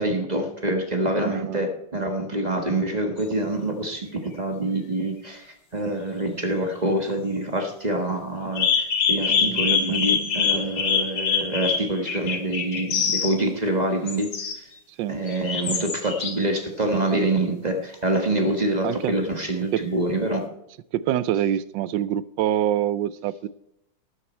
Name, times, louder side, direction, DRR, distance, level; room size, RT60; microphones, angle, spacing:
voice 1, 0.0-14.7 15.1-20.5, right 1 dB, 25° right, 4 dB, 1.3 m, -26 dB
voice 2, 1.2-1.6 9.3-10.0 15.0-15.2 17.1-17.2 18.8-19.2 19.7-19.9 20.9-23.5, right 11 dB, 80° right, 17 dB, 1.3 m, -26 dB
sound 1, 3.2-3.3 8.6-13.4 14.1-14.6 15.3-16.4 17.1-17.2, left 6 dB, 85° left, 2.3 m, -24 dB
12.5 x 10.5 x 4.4 m, 0.79 s
omnidirectional pair, 2.0 m